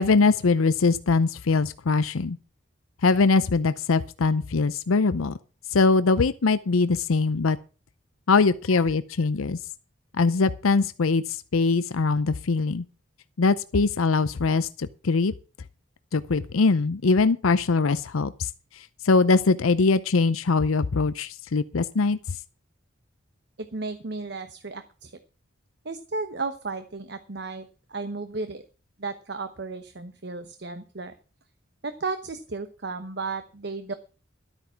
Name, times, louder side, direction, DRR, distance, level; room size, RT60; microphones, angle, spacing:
voice 1, 0.0-2.4 3.0-5.3 5.7-7.6 8.3-9.6 10.2-11.2 11.5-12.8 13.4-15.3 16.1-18.5 19.0-22.2, left 4 dB, 85° left, 0.6 m, -22 dB
voice 2, 23.6-25.1 25.8-28.6 29.0-31.1 31.8-33.9, right 3 dB, 55° right, 0.9 m, -34 dB
12.5 x 8.9 x 5.8 m
head